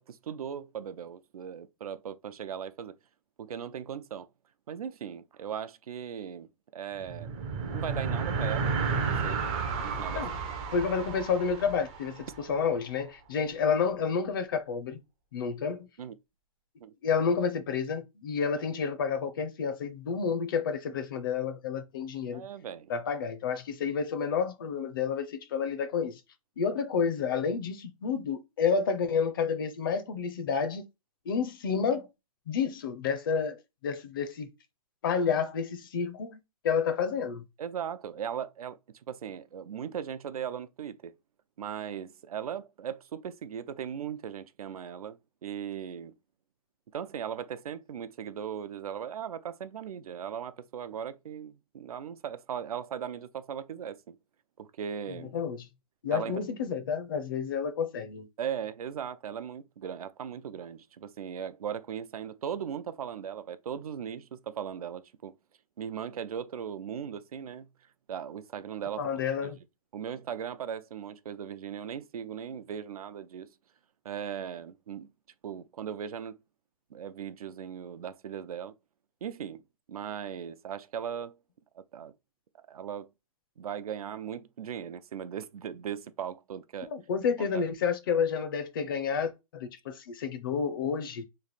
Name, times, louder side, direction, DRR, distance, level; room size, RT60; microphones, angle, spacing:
voice 1, 0.0-3.0 3.4-4.3 4.7-7.4 7.7-8.7 9.2-9.5 9.8-10.3 16.0-16.1 16.8-16.9 22.3-22.9 37.6-38.8 39.1-41.1 41.6-46.1 46.9-54.2 54.6-55.3 56.1-56.4 58.4-65.3 65.8-67.7 68.1-69.0 69.9-73.5 74.0-75.1 75.4-76.4 76.9-78.7 79.2-79.6 79.9-81.4 81.8-82.1 82.7-83.1 83.6-86.9 87.4-87.7, right 8 dB, 80° right, 0.5 m, -38 dB
sound 1, 7.0-12.7, right 5 dB, 15° right, 0.4 m, -32 dB
voice 2, 10.7-15.0 15.3-15.9 17.0-22.4 22.9-26.2 26.6-30.8 31.3-32.1 32.5-33.6 33.8-34.5 35.0-36.4 36.6-37.4 55.3-55.7 56.0-58.3 69.0-69.6 86.9-91.2, left 6 dB, 35° left, 0.5 m, -30 dB
3.2 x 2.5 x 4.0 m
hypercardioid pair, 160°, 18 cm